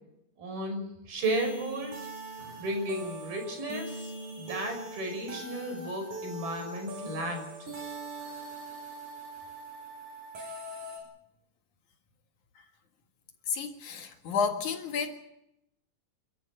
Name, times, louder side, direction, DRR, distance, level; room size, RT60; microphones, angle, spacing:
voice 1, 0.4-1.9 2.4-4.1 4.4-7.4, right 1 dB, 85° right, 7.5 m, -34 dB
sound 1, 1.2-11.0, right 1 dB, 55° right, 7.5 m, -42 dB
voice 2, 13.5-15.1, left 6 dB, 60° left, 3.0 m, -31 dB
29.5 x 14.0 x 7.8 m
omnidirectional pair, 4.2 m